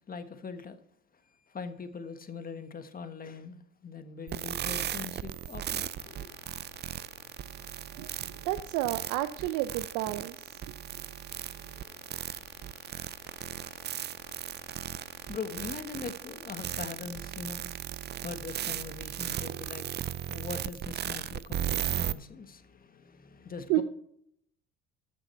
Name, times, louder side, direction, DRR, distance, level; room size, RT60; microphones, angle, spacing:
voice 1, 0.1-0.8 1.5-6.3 15.3-17.6 18.2-19.9 20.3-23.8, left 5 dB, 30° left, 1.4 m, -42 dB
sound 1, 4.3-22.1, right 10 dB, 35° right, 0.5 m, -36 dB
sound 2, 5.8-15.8, left 4 dB, 85° left, 3.1 m, -57 dB
voice 2, 7.9-10.6 23.7-23.8, right 15 dB, 80° right, 0.7 m, -31 dB
14.0 x 6.2 x 4.4 m
supercardioid pair, 90°, 30 cm